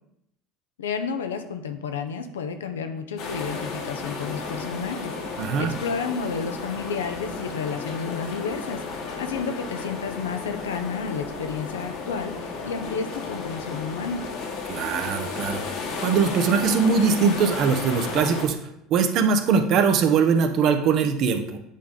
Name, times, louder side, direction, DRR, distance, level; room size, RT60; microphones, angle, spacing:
voice 1, 0.8-14.2, left 5 dB, 90° left, 8 dB, 0.6 m, -31 dB
sound 1, 3.2-18.5, left 4 dB, 65° left, 1.3 m, -33 dB
voice 2, 5.4-5.7 14.7-18.6 18.9-21.6, right 6 dB, 55° right, 7 dB, 0.8 m, -21 dB
8.4 x 3.6 x 3.9 m, 0.80 s
hypercardioid pair, 75°, 0 cm